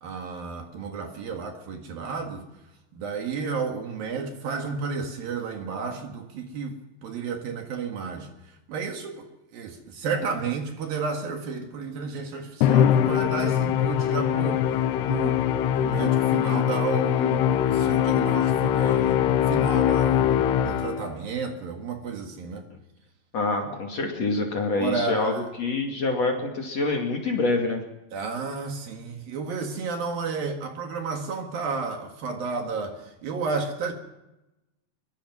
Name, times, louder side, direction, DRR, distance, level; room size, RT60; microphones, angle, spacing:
voice 1, 0.0-2.4 2.9-8.3 8.7-14.6 15.0-15.4 15.7-22.6 23.6-23.7 24.8-25.5 28.1-33.9, right 5 dB, 60° right, 4 dB, 3.3 m, -32 dB
Musical instrument, 12.6-21.2, left 10 dB, 75° left, 2.9 m, -22 dB
voice 2, 23.3-27.8, left 3 dB, 45° left, 2 dB, 3.0 m, -26 dB
23.5 x 23.0 x 6.1 m, 0.97 s
omnidirectional pair, 5.0 m